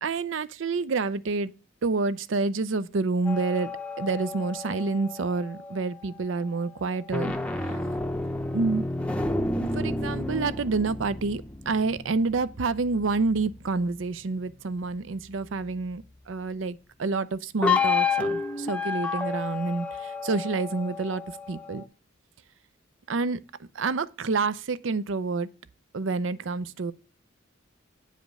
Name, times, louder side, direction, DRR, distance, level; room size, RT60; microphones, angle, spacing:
voice 1, 0.0-1.5 1.8-3.7 4.0-7.3 8.5-8.9 9.6-19.9 20.2-21.2 21.5-21.8 23.1-23.4 23.8-25.5 25.9-26.9, right 4 dB, 75° right, 0.5 m, -28 dB
sound 1, 3.2-5.9 6.9-13.8 17.6-21.8, left 3 dB, 5° left, 0.6 m, -30 dB
9.1 x 5.0 x 5.4 m
head